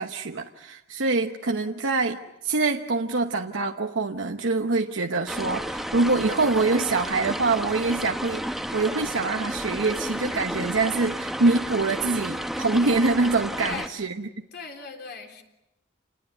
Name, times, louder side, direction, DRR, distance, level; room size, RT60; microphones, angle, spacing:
voice 1, 0.0-14.1, right 3 dB, 75° right, 4 dB, 1.0 m, -25 dB
sound 1, 5.3-13.9, equal, ahead, 0.9 m, -32 dB
voice 2, 13.6-14.0 14.5-15.4, left 4 dB, 55° left, 4 dB, 3.6 m, -38 dB
28.5 x 20.5 x 8.0 m, 0.93 s
head